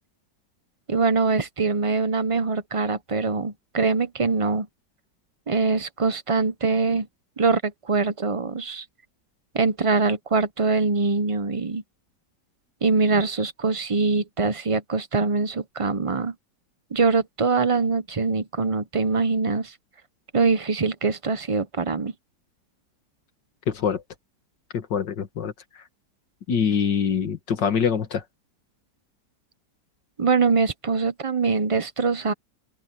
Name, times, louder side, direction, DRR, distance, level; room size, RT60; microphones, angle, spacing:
voice 1, 0.9-4.7 5.5-7.1 7.4-8.8 9.5-11.8 12.8-16.3 16.9-19.7 20.3-22.1 30.2-32.3, right 4 dB, 35° right, 0.5 m, -23 dB
voice 2, 23.7-24.0 24.7-25.5 26.5-28.2, left 7 dB, 85° left, 2.4 m, -24 dB
open air
omnidirectional pair, 1.9 m